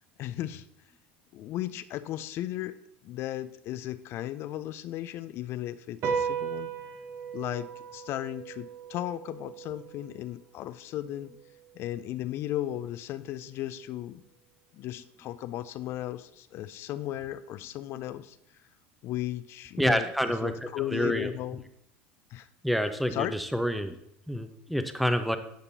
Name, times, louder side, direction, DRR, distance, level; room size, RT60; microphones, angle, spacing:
voice 1, 0.2-0.6 1.3-2.8 3.0-6.7 7.3-11.3 11.7-14.2 14.7-18.4 19.0-21.7 22.3-22.5 23.1-23.4, left 13 dB, 55° left, 14 dB, 0.4 m, -35 dB
sound 1, 6.0-12.7, right 7 dB, 50° right, 1.0 m, -37 dB
voice 2, 19.8-20.5 20.9-21.3 22.6-23.3 23.5-23.9 24.3-25.4, equal, ahead, 8 dB, 0.6 m, -27 dB
11.0 x 5.2 x 2.7 m, 0.75 s
hypercardioid pair, 80°, 5 cm